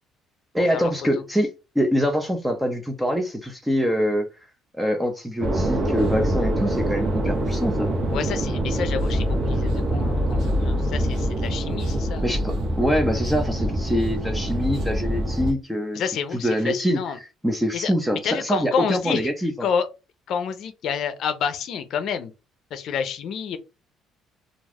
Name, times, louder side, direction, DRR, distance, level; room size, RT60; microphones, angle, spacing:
voice 1, 0.5-1.5 1.8-4.3 4.7-7.9 12.2-19.7, equal, 5° right, 0.5 m, -24 dB
sound 1, 5.4-15.5, equal, 50° right, 0.9 m, -24 dB
voice 2, 8.1-12.3 15.9-17.2 17.7-17.9 18.2-19.3 19.6-19.9 20.3-22.3 22.7-23.6, left 7 dB, 60° left, 0.5 m, -28 dB
2.4 x 2.3 x 3.4 m
cardioid pair, 145°, 0 cm